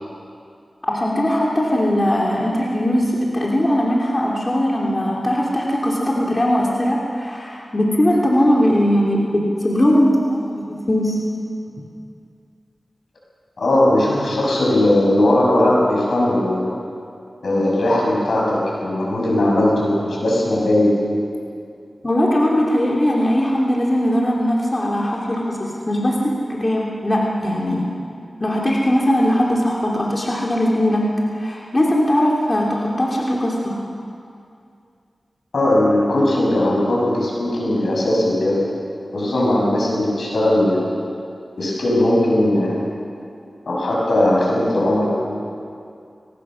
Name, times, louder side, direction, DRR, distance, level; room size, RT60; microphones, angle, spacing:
voice 1, 0.8-11.2 22.0-27.9 28.4-31.1 31.3-33.8, equal, 35° left, -3 dB, 2.9 m, -19 dB
voice 2, 13.6-16.7 17.4-21.0 35.5-38.6 39.1-40.9 41.6-42.8 43.7-45.2, left 1 dB, 85° left, -4 dB, 7.0 m, -18 dB
22.0 x 18.5 x 6.4 m, 2.4 s
cardioid pair, 55°, 0 cm